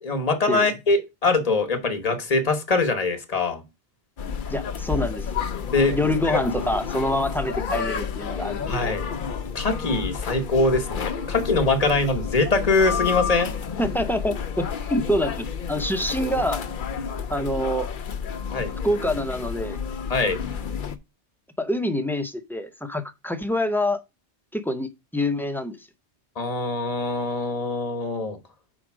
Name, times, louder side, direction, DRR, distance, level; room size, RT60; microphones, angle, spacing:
voice 1, 0.0-3.6 5.7-6.0 6.2-6.4 8.7-9.0 9.5-13.5 18.5-18.7 20.1-20.4 26.4-28.4, left 3 dB, 35° left, 1.2 m, -23 dB
sound 1, 4.2-21.0, left 6 dB, 55° left, 0.7 m, -30 dB
voice 2, 4.5-5.5 5.9-8.9 13.8-16.6 17.3-17.9 18.8-19.8 21.6-24.0 24.5-25.9, left 1 dB, 5° left, 0.4 m, -26 dB
5.0 x 4.5 x 6.0 m
omnidirectional pair, 1.2 m